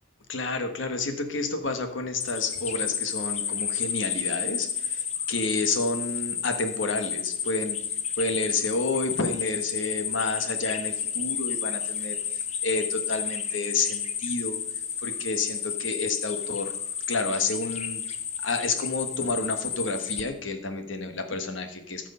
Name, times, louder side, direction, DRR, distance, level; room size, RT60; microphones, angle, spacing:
voice 1, 0.3-7.8 8.2-14.6 15.0-16.7 17.1-18.0 18.4-22.1, left 3 dB, 85° left, 7 dB, 1.4 m, -30 dB
sound 1, 2.2-20.2, left 8 dB, 35° left, 0.8 m, -31 dB
14.0 x 6.2 x 5.5 m, 0.69 s
head